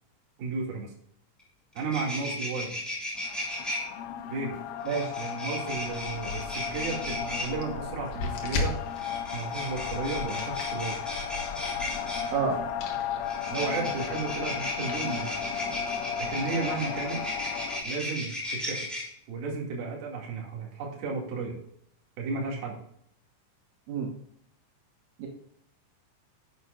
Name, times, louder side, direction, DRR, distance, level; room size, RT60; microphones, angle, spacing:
voice 1, 0.4-0.9 1.7-2.8 4.3-4.5 5.2-8.7 9.3-11.0 13.5-15.4 16.2-17.2 17.8-18.9 19.3-21.6 22.2-22.8, right 4 dB, 55° right, -2 dB, 3.8 m, -33 dB
sound 1, 1.4-1.5 1.7-3.8 4.9-7.5 8.9-12.3 13.2-19.0, left 1 dB, ahead, 2.0 m, -35 dB
sound 2, 3.2-17.8, left 9 dB, 85° left, 3.4 m, -35 dB
voice 2, 4.9-5.1 12.3-12.6 23.9-24.1 25.2-25.3, right 5 dB, 75° right, -1 dB, 3.7 m, -28 dB
sound 3, 5.7-17.9, left 3 dB, 60° left, 2.5 m, -40 dB
10.5 x 9.3 x 2.5 m, 0.70 s
omnidirectional pair, 5.6 m